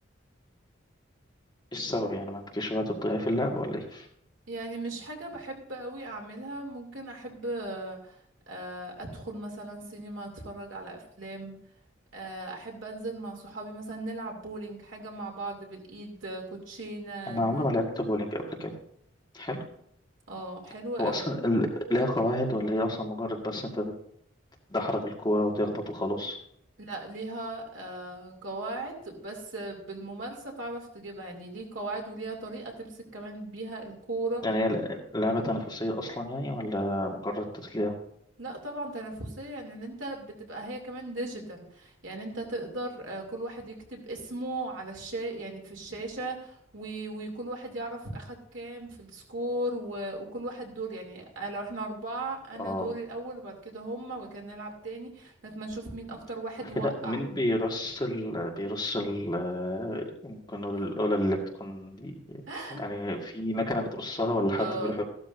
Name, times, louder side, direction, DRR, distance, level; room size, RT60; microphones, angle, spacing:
voice 1, 1.7-4.1 17.3-18.7 19.3-19.6 21.0-23.9 24.7-26.4 34.4-37.9 52.6-52.9 56.8-62.4 62.7-65.0, left 1 dB, 20° left, 0 dB, 1.7 m, -30 dB
voice 2, 4.5-8.2 8.5-11.5 12.1-17.7 20.3-21.4 26.8-34.4 38.4-57.2 62.5-62.8 64.6-65.0, right 2 dB, 70° right, 1 dB, 2.7 m, -37 dB
15.0 x 12.5 x 2.6 m, 0.67 s
head